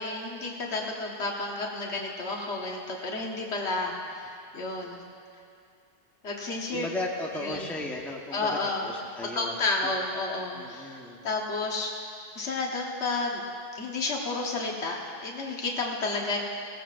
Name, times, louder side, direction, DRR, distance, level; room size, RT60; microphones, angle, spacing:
voice 1, 0.0-5.0 6.2-6.9 7.4-7.7 8.3-8.9 9.3-11.0 11.2-11.9 12.3-13.4 13.8-16.4, left 3 dB, 80° left, -1 dB, 1.6 m, -31 dB
voice 2, 6.7-9.6 9.8-9.9 10.5-11.2, left 1 dB, ahead, -2 dB, 1.1 m, -36 dB
19.0 x 16.5 x 2.5 m, 2.5 s
omnidirectional pair, 1.1 m